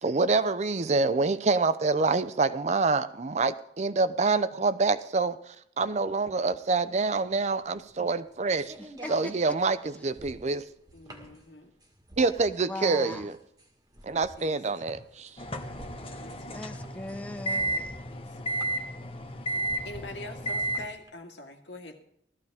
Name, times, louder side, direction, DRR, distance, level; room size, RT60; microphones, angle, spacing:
voice 1, 0.0-8.7 9.1-10.6 12.2-13.4 14.0-15.3, right 3 dB, 40° right, 14 dB, 0.5 m, -26 dB
sound 1, 7.2-21.1, right 1 dB, 20° right, 1.8 m, -50 dB
voice 2, 10.9-11.7 14.4-14.6 16.2-16.6 18.1-18.7 19.8-22.0, left 1 dB, 90° left, 3 dB, 2.1 m, -44 dB
voice 3, 12.7-13.3 16.5-18.0, left 1 dB, 10° left, 6 dB, 0.8 m, -39 dB
sound 2, 15.4-20.8, right 1 dB, 30° left, 1.0 m, -33 dB
16.5 x 13.5 x 3.6 m, 0.74 s
head